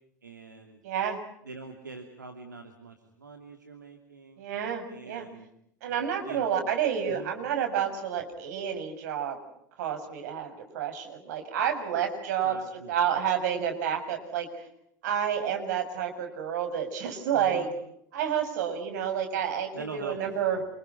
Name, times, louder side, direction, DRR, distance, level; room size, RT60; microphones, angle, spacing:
voice 1, 0.2-0.8 1.4-4.4 4.9-5.5 5.9-6.5 7.1-7.3 12.4-12.9 17.3-17.7 19.7-20.7, right 4 dB, 80° right, 4 dB, 3.0 m, -44 dB
voice 2, 0.8-1.2 4.4-5.3 5.8-9.4 9.8-12.6 12.9-14.7 15.0-17.7 18.1-20.6, right 8 dB, 60° right, 5 dB, 7.2 m, -29 dB
29.5 x 27.5 x 6.0 m, 0.74 s
figure-of-eight pair, 75°, 10 cm